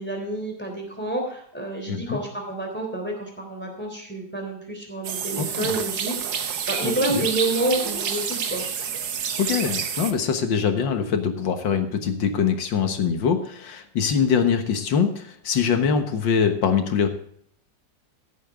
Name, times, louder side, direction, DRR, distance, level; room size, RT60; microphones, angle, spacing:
voice 1, 0.0-8.6, right 2 dB, 5° left, 1 dB, 3.4 m, -29 dB
voice 2, 1.9-2.2 5.4-5.7 6.8-7.3 9.4-17.1, left 6 dB, 90° left, 7 dB, 2.1 m, -23 dB
sound 1, 5.0-10.1, right 7 dB, 85° right, 1.9 m, -28 dB
15.5 x 8.7 x 3.6 m, 0.65 s
omnidirectional pair, 2.0 m